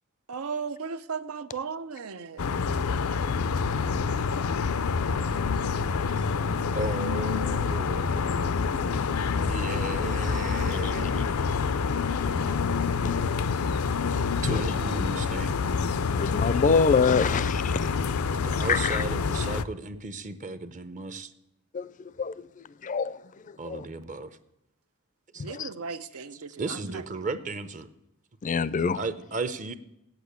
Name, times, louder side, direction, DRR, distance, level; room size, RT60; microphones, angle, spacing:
voice 1, 0.3-2.4 11.9-12.7 25.4-26.5, right 5 dB, 85° right, 0.7 m, -36 dB
sound 1, 2.4-19.6, left 5 dB, 90° left, 0.5 m, -27 dB
voice 2, 6.7-8.6 9.4-11.3 14.4-15.5 18.4-21.3 23.6-24.4 25.3-25.4 26.1-27.9 28.9-29.7, right 3 dB, 35° right, 0.6 m, -35 dB
voice 3, 16.1-17.9 18.7-19.0 21.7-21.9 22.2-23.2 23.5-23.8 25.4-25.7 28.4-29.0, left 5 dB, 35° left, 0.4 m, -26 dB
8.5 x 8.4 x 8.2 m
head